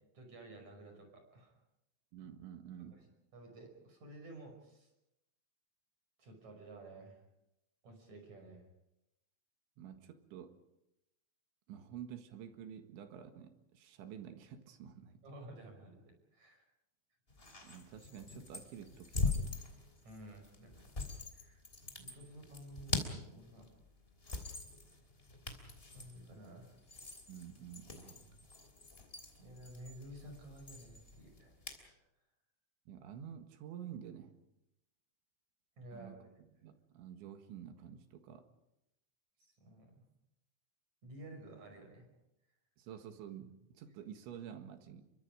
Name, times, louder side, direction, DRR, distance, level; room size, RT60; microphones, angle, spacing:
voice 1, 0.1-1.5 3.3-4.9 6.2-7.2 7.8-8.6 11.7-11.8 15.2-16.6 20.0-20.8 21.3-21.6 21.9-23.7 25.9-26.7 29.4-31.9 35.8-36.3 39.4-40.0 41.0-42.1, right 1 dB, 35° right, 3 dB, 6.5 m, -53 dB
voice 2, 2.1-3.1 9.8-10.6 11.7-15.2 17.6-19.6 27.3-28.5 32.9-34.3 35.9-38.5 42.8-45.0, right 9 dB, 70° right, 7 dB, 3.8 m, -50 dB
sound 1, 17.3-31.9, left 3 dB, 15° left, 2.1 m, -43 dB
29.5 x 23.5 x 5.1 m, 0.87 s
omnidirectional pair, 5.8 m